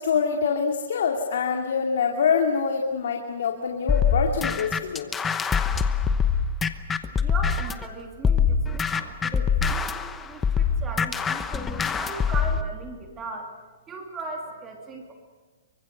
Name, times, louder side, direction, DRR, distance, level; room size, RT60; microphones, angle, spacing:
voice 1, 0.0-5.1, left 6 dB, 70° left, 2 dB, 2.4 m, -25 dB
sound 1, 3.9-7.9 8.2-12.6, left 6 dB, 10° left, 0.9 m, -24 dB
voice 2, 7.2-13.5 13.9-15.1, right 3 dB, 15° right, 1 dB, 2.8 m, -38 dB
25.5 x 24.0 x 6.7 m, 1.3 s
hypercardioid pair, 165°, 0 cm